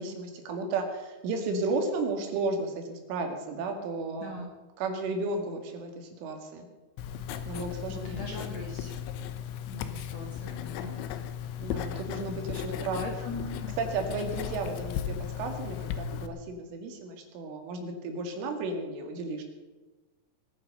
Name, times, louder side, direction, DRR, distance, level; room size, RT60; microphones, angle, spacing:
voice 1, 0.0-4.5 4.8-6.7 7.5-8.2 11.6-13.0 13.8-19.4, right 3 dB, 85° right, 4 dB, 4.6 m, -33 dB
voice 2, 4.2-4.5 7.9-8.9 9.7-11.1 12.7-13.7, left 2 dB, 55° left, 0 dB, 2.0 m, -40 dB
Writing, 7.0-16.3, left 9 dB, 80° left, 3.3 m, -36 dB
21.0 x 9.7 x 6.7 m, 1.2 s
omnidirectional pair, 5.5 m